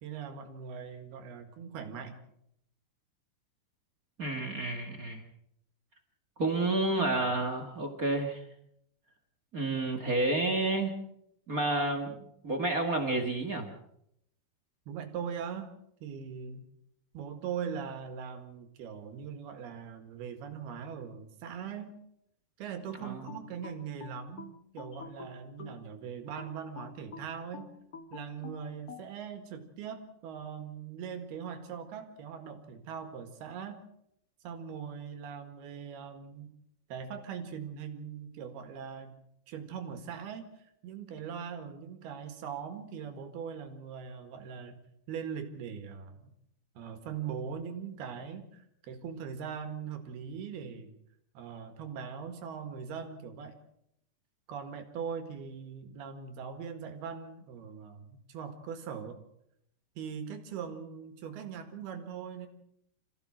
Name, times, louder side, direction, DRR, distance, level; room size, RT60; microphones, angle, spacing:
voice 1, 0.0-2.2 14.9-15.7 16.0-16.7 17.1-22.0 22.6-27.8 28.1-33.8 34.4-36.5 36.9-39.2 39.5-40.5 40.8-44.8 45.1-46.3 46.8-51.0 51.4-53.6 54.5-59.2 60.0-62.5, right 7 dB, 75° right, 7 dB, 3.8 m, -41 dB
voice 2, 4.2-5.2 6.4-8.4 9.5-11.0 11.5-13.7 23.0-23.2, right 2 dB, 35° right, 3 dB, 1.5 m, -30 dB
sound 1, 23.3-25.9 26.4-29.1, left 6 dB, 50° left, 1.1 m, -47 dB
27.0 x 15.5 x 6.3 m, 0.75 s
omnidirectional pair, 4.6 m